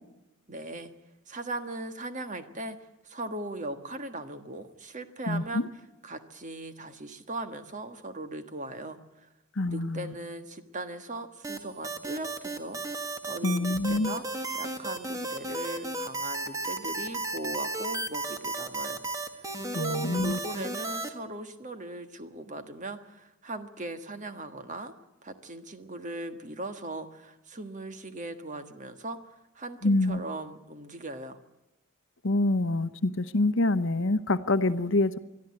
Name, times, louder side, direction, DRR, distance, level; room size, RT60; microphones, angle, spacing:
voice 1, 0.5-0.9 1.3-2.8 3.0-5.6 6.0-9.3 9.7-12.8 13.3-14.2 14.5-19.0 19.3-24.9 25.2-31.4, right 2 dB, 35° right, 1.6 m, -39 dB
voice 2, 5.3-5.7 9.6-10.1 13.4-14.1 19.7-20.4 29.8-30.2 32.2-35.2, left 2 dB, 60° left, 1.0 m, -26 dB
sound 1, 11.4-21.1, right 2 dB, 15° right, 1.6 m, -34 dB
22.0 x 13.0 x 9.7 m
head